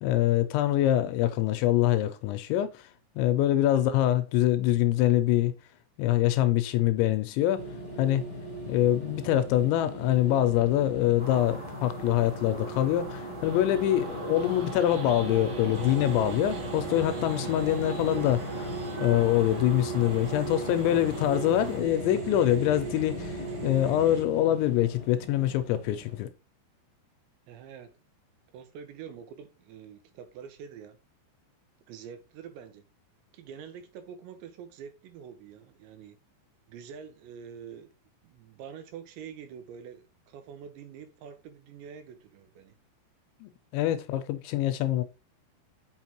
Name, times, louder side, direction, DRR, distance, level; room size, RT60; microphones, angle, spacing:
voice 1, 0.0-2.9 3.2-5.5 6.0-7.7 8.0-8.2 8.7-26.3 43.4-45.0, left 13 dB, 85° left, 2.8 m, -25 dB
voice 2, 3.7-4.1 27.5-27.9 28.5-31.0 31.9-32.9 33.3-36.2 36.7-37.9 38.2-42.8, right 7 dB, 80° right, 2.9 m, -46 dB
sound 1, 7.5-26.2, right 1 dB, 15° left, 1.8 m, -37 dB
sound 2, 11.2-21.8, right 3 dB, 30° right, 2.5 m, -42 dB
sound 3, 13.4-24.3, right 4 dB, 60° right, 2.7 m, -46 dB
6.5 x 5.8 x 2.9 m
omnidirectional pair, 5.5 m